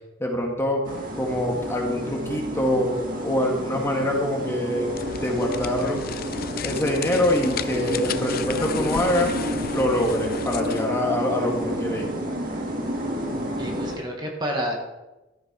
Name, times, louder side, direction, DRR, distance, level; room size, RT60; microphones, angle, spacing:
voice 1, 0.2-0.8 1.2-3.0 3.2-4.9 5.2-6.0 6.6-9.3 9.7-12.1, left 1 dB, 15° left, 0 dB, 1.7 m, -24 dB
sound 1, 0.8-14.0, equal, 50° right, 1.8 m, -30 dB
sound 2, 4.9-10.9, left 7 dB, 50° left, 0.5 m, -34 dB
voice 2, 13.6-14.7, equal, 25° right, 0 dB, 1.4 m, -29 dB
13.5 x 6.6 x 4.7 m, 1.0 s
head